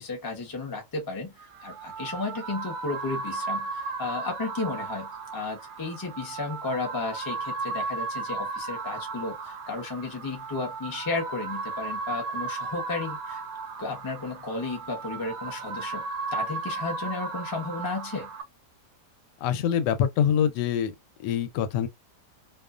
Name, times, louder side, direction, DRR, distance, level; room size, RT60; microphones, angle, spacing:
voice 1, 0.0-1.3 1.6-13.4 13.8-16.0 16.3-18.3, left 3 dB, 30° left, 0.3 m, -33 dB
sound 1, 1.4-18.4, right 4 dB, 70° right, 0.9 m, -35 dB
voice 2, 19.4-20.9 21.2-21.9, left 9 dB, 90° left, 1.2 m, -25 dB
2.6 x 2.4 x 2.3 m
omnidirectional pair, 1.8 m